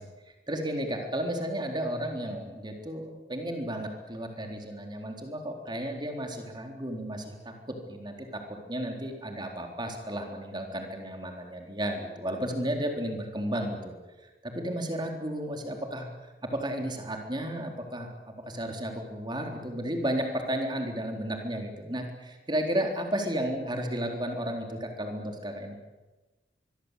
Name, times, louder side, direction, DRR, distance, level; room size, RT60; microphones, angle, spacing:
voice 1, 0.5-3.0 3.3-7.5 7.9-8.4 8.7-13.9 14.4-16.1 16.5-18.1 18.5-25.8, right 1 dB, 25° right, 3 dB, 3.8 m, -33 dB
24.5 x 23.0 x 8.3 m, 1.2 s
head